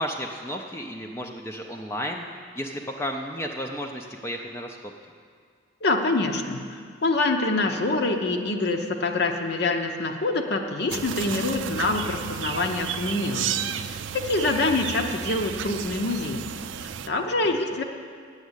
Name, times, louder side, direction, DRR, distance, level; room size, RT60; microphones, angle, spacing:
voice 1, 0.0-2.3 2.5-4.9 17.5-17.6, equal, 15° left, 2 dB, 0.4 m, -33 dB
voice 2, 5.8-16.4 16.8-17.8, left 2 dB, 60° left, 4 dB, 0.7 m, -26 dB
sound 1, 10.9-17.1, right 9 dB, 80° right, 0.4 m, -32 dB
9.2 x 7.3 x 8.0 m, 2.1 s
head